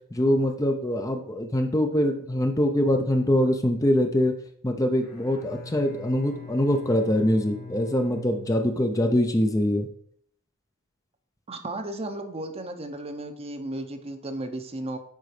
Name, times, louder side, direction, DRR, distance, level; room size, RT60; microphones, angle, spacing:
voice 1, 0.1-4.4 4.6-9.9, left 1 dB, 15° left, 5 dB, 0.6 m, -23 dB
Bowed string instrument, 5.0-9.3, left 3 dB, 50° left, 1.7 m, -44 dB
voice 2, 11.5-15.0, right 1 dB, 30° right, 7 dB, 0.8 m, -34 dB
9.1 x 4.0 x 4.9 m, 0.65 s
head